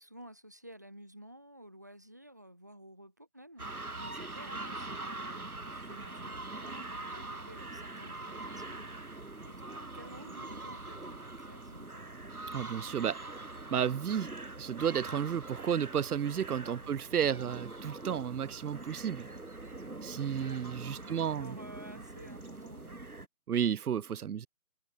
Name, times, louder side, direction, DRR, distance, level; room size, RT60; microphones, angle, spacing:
voice 1, 0.0-12.0 16.8-17.0 17.3-17.5 20.4-23.1, equal, 10° right, 2.1 m, -53 dB
sound 1, 3.6-23.3, right 2 dB, 75° right, 3.9 m, -43 dB
voice 2, 12.5-13.2 13.7-14.3 14.6-19.3 20.0-21.6 23.5-24.5, right 8 dB, 90° right, 0.5 m, -32 dB
figure-of-eight pair, 175°, 44 cm